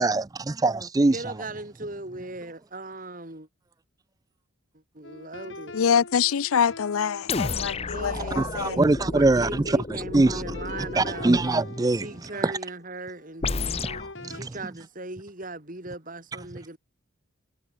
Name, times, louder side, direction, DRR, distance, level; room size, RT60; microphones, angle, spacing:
voice 1, 0.0-1.2 8.4-10.4 11.0-12.1 12.4-12.5 13.8-13.9 14.2-14.5, right 2 dB, 15° right, 0.3 m, -23 dB
voice 2, 1.1-3.5 4.7-5.8 7.9-8.8 9.1-11.4 12.0-13.9 14.3-16.8, right 2 dB, 40° right, 2.8 m, -38 dB
sound 1, 5.0-9.9 10.5-14.4, left 2 dB, 60° left, 3.7 m, -45 dB
voice 3, 5.7-8.8, left 7 dB, 85° left, 0.5 m, -25 dB
sound 2, 7.3-11.6 13.4-14.1, left 3 dB, 30° left, 0.7 m, -32 dB
head